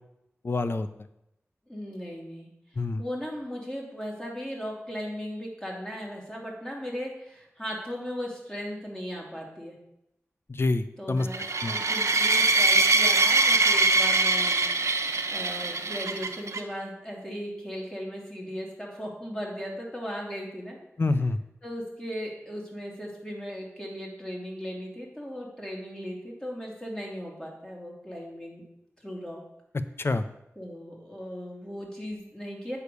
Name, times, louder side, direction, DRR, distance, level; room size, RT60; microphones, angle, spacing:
voice 1, 0.4-0.9 2.8-3.0 10.5-11.3 11.6-11.8 21.0-21.4 30.0-30.2, left 3 dB, 50° left, 11 dB, 0.6 m, -26 dB
voice 2, 1.7-2.5 3.0-9.8 11.0-14.7 15.3-20.8 21.6-28.6 29.0-29.4 30.6-32.8, equal, 15° left, -2 dB, 2.6 m, -37 dB
sound 1, 11.3-16.6, right 3 dB, 75° right, 0.8 m, -23 dB
8.1 x 4.9 x 6.8 m, 0.83 s
wide cardioid pair, 80°, 5 cm